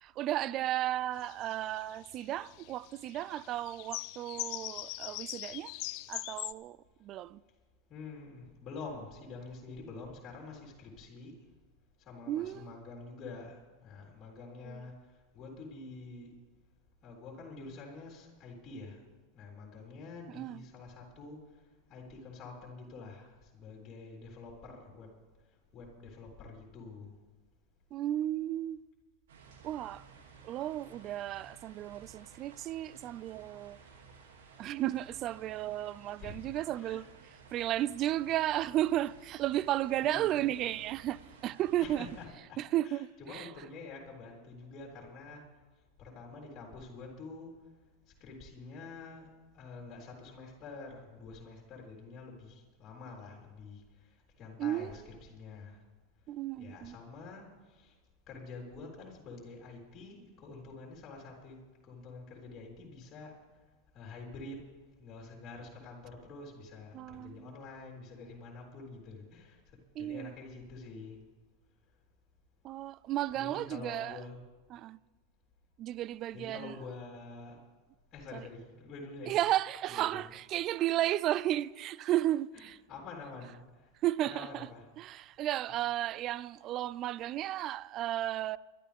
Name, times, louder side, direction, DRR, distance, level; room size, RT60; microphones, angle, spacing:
voice 1, 0.0-5.7 6.1-6.8 7.0-7.4 12.3-12.7 14.6-14.8 20.3-20.6 27.9-28.8 29.6-30.0 30.4-33.8 34.6-37.1 37.5-42.1 42.6-43.5 54.6-54.9 56.3-57.0 66.9-67.5 70.0-70.3 72.6-74.2 74.7-75.0 75.8-76.7 78.3-78.4 79.3-82.8 84.0-84.7 85.0-88.6, right 13 dB, 40° right, 0.3 m, -33 dB
sound 1, 1.2-6.5, left 20 dB, 55° left, 0.4 m, -41 dB
voice 2, 7.9-11.4 12.0-16.4 17.0-19.1 19.3-25.1 25.5-27.2 36.2-36.4 36.7-37.0 40.0-40.5 41.8-42.6 42.8-45.5 46.0-47.7 48.2-55.8 56.6-58.0 58.3-63.4 63.9-64.7 65.0-71.2 73.3-74.4 76.3-77.6 78.1-79.4 79.9-80.3 82.5-83.9 84.2-84.8 85.7-85.8, left 3 dB, 35° left, 4.0 m, -47 dB
sound 2, 29.3-42.3, right 5 dB, 75° right, 2.5 m, -56 dB
22.5 x 12.0 x 3.5 m
hypercardioid pair, 100°, 0 cm